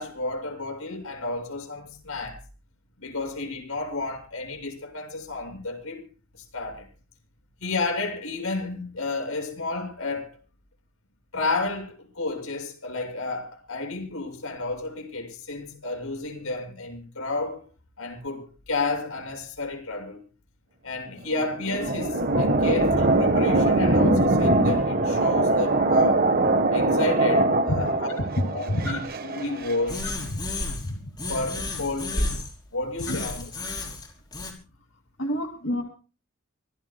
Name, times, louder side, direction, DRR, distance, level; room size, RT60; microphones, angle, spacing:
voice 1, 0.0-2.4 3.0-6.1 6.5-6.9 7.6-10.3 11.3-17.6 18.0-20.2 20.8-26.3 26.7-30.0 31.3-32.4 32.7-33.5, left 3 dB, 85° left, 6.7 m, -31 dB
sound 1, 21.2-29.7, right 2 dB, 45° right, 1.4 m, -22 dB
voice 2, 28.7-29.0 30.0-30.4 30.9-31.0 33.1-33.2 35.2-35.8, equal, 65° left, 2.7 m, -28 dB
sound 2, 29.9-30.9 31.2-32.5 33.0-34.5, left 2 dB, 20° left, 4.6 m, -31 dB
25.5 x 18.0 x 2.3 m
head